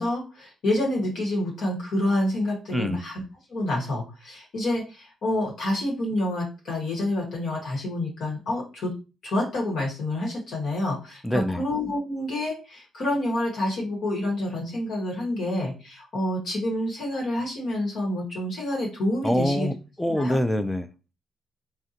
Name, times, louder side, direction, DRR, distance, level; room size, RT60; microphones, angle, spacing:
voice 1, 0.0-3.2 3.5-8.9 9.2-19.7 20.1-20.4, left 1 dB, 65° left, -3 dB, 1.1 m, -28 dB
voice 2, 2.7-3.0 11.2-11.7 19.2-21.1, equal, 5° left, 11 dB, 0.3 m, -25 dB
3.6 x 2.1 x 2.8 m, 0.31 s
cardioid pair, 90°, 0 cm